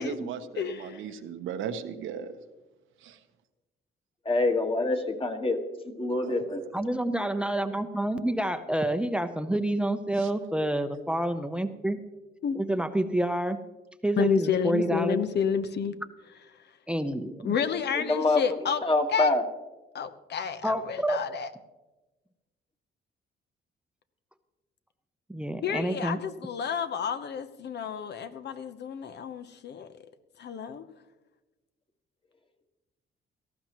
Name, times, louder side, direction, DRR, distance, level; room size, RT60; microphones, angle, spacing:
voice 1, 0.0-2.3 3.0-3.2 6.1-6.7 10.1-10.3, right 8 dB, 80° right, 7 dB, 1.1 m, -37 dB
voice 2, 0.6-1.0 12.4-12.6 14.2-15.9 17.4-18.8 19.1-19.3 19.9-21.5 25.6-29.9 30.4-30.9, left 7 dB, 60° left, 10 dB, 0.9 m, -30 dB
voice 3, 4.2-5.6 5.8-6.6 18.1-18.4 18.8-19.4, left 2 dB, 25° left, 4 dB, 1.7 m, -25 dB
voice 4, 6.7-12.0 12.6-13.6 14.0-15.2 16.9-17.5 20.6-21.2 25.3-26.2, right 1 dB, 5° right, 10 dB, 0.7 m, -28 dB
18.0 x 14.0 x 3.1 m, 1.1 s
cardioid pair, 90°, 20 cm